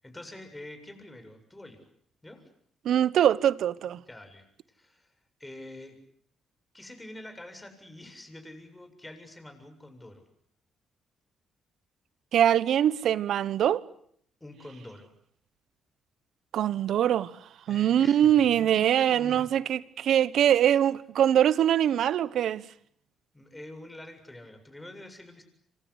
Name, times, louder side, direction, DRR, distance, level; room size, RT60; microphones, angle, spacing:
voice 1, 0.0-1.8 2.2-2.5 4.1-5.1 5.4-6.0 6.7-10.2 14.4-15.1 17.7-19.5 23.3-25.4, left 1 dB, 10° left, 7.5 m, -46 dB
voice 2, 2.8-4.0 12.3-13.8 16.5-17.3 17.7-22.6, right 10 dB, 70° right, 1.2 m, -23 dB
27.0 x 26.5 x 8.3 m
cardioid pair, 90°, 0 cm